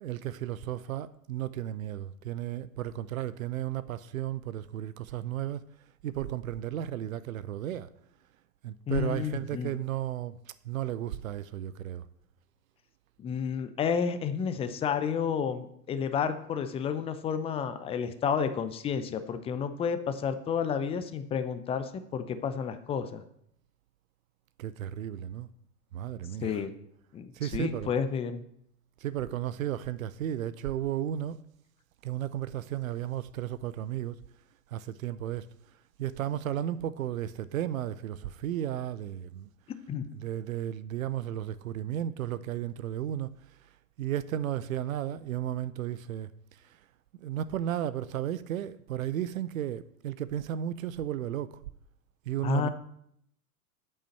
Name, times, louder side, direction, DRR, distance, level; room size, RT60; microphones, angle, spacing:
voice 1, 0.0-5.6 6.0-7.9 8.6-10.4 10.6-12.0 24.6-25.5 25.9-26.7 27.3-27.9 29.0-31.4 32.0-34.2 34.7-35.5 36.0-39.5 40.1-43.3 44.0-46.3 46.6-46.8 47.2-51.6 52.3-52.7, right 11 dB, 60° right, 0.7 m, -34 dB
voice 2, 8.9-9.7 13.2-23.2 26.4-26.7 27.1-28.4 39.9-40.1 52.4-52.7, left 7 dB, 15° left, 0.6 m, -31 dB
8.5 x 5.6 x 7.7 m
figure-of-eight pair, 100°, 46 cm